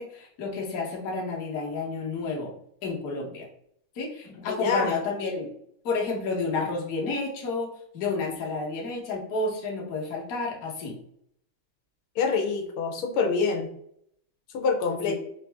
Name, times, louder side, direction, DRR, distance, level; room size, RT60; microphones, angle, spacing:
voice 1, 0.0-2.5 2.8-3.5 4.0-5.5 5.8-11.0 15.1-15.2, left 3 dB, 50° left, -2 dB, 1.2 m, -30 dB
voice 2, 4.5-4.9 12.2-13.7 14.5-15.1, left 5 dB, 85° left, 3 dB, 1.6 m, -26 dB
4.3 x 2.6 x 3.3 m, 0.70 s
omnidirectional pair, 2.3 m